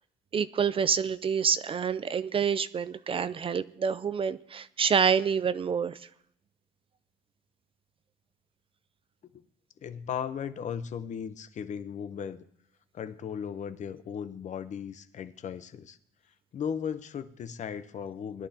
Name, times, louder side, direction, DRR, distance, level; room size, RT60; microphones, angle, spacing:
voice 1, 0.3-6.0, right 6 dB, 35° right, 15 dB, 0.5 m, -27 dB
voice 2, 9.8-12.4 12.9-16.0 16.5-18.5, left 7 dB, 45° left, 11 dB, 0.9 m, -36 dB
20.5 x 11.5 x 2.9 m, 0.76 s
cardioid pair, 110°, 17 cm